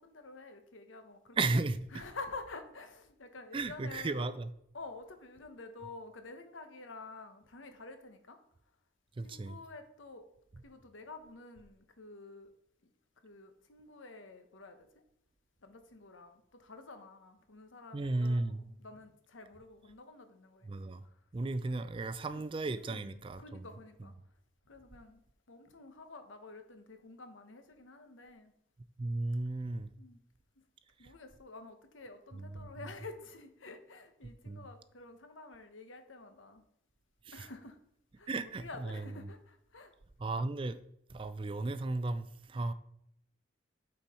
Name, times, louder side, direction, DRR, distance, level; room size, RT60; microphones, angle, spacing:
voice 1, 0.0-1.6 1.9-4.3 4.7-8.4 9.2-10.2 10.6-12.5 13.2-14.9 15.6-20.7 22.2-22.4 22.8-24.1 24.7-25.2 25.5-28.5 30.0-30.2 31.0-36.6 37.3-37.8 38.2-38.3 38.6-39.9, left 3 dB, 85° left, 1.0 m, -49 dB
voice 2, 1.4-2.0 3.5-4.5 9.2-9.6 17.9-18.6 20.6-21.0 21.3-23.7 29.0-29.9 32.6-32.7 34.5-34.7 37.3-37.5 38.3-39.1 40.2-40.8 41.1-42.7, right 2 dB, 25° right, 0.3 m, -35 dB
8.9 x 4.5 x 4.3 m
head